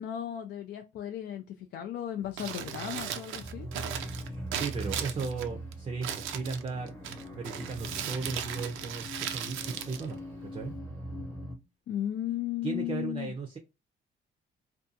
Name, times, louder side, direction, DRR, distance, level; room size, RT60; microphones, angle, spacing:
voice 1, 0.0-3.7 11.9-13.3, left 11 dB, 60° left, 0.4 m, -35 dB
Crumpling crinkling, 2.2-10.8, right 9 dB, 85° right, 0.4 m, -38 dB
sound 1, 3.1-11.6, equal, 15° left, 0.9 m, -42 dB
voice 2, 4.2-6.9 7.3-10.7 12.6-13.6, right 4 dB, 25° right, 0.5 m, -36 dB
2.5 x 2.3 x 2.5 m
cardioid pair, 90°, 20 cm